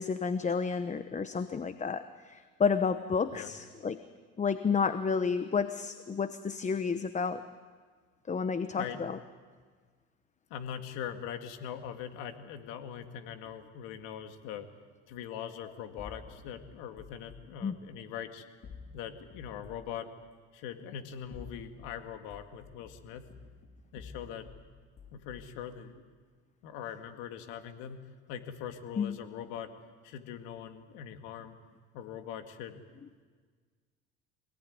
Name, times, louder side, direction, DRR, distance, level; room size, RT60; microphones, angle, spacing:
voice 1, 0.0-4.0 4.4-7.4 8.3-9.2 17.6-17.7 29.0-29.2, left 5 dB, 25° left, 11 dB, 1.0 m, -31 dB
voice 2, 10.5-14.7 15.1-18.4 18.9-20.1 20.5-23.2 23.9-24.5 25.1-26.0 26.6-28.0 28.3-29.7 30.0-31.6 31.9-32.8, left 8 dB, 80° left, 6 dB, 2.3 m, -42 dB
sound 1, 16.0-17.5 18.6-19.9 21.1-22.0 22.3-24.6 25.0-25.6, left 5 dB, 45° left, 4.3 m, -50 dB
26.5 x 18.5 x 9.6 m, 1.6 s
supercardioid pair, 95°, 30 cm